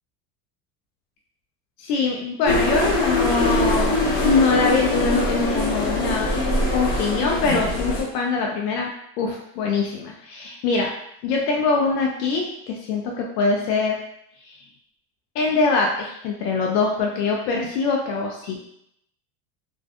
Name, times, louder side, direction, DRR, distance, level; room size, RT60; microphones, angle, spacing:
voice 1, 1.8-6.3 6.7-8.9 9.2-10.9 11.2-14.0 14.4-14.6 15.3-18.7, left 4 dB, 90° left, 0 dB, 0.5 m, -23 dB
sound 1, 2.5-8.0, left 2 dB, 65° left, 1.0 m, -22 dB
2.4 x 2.3 x 2.4 m, 0.75 s
supercardioid pair, 120°, 47 cm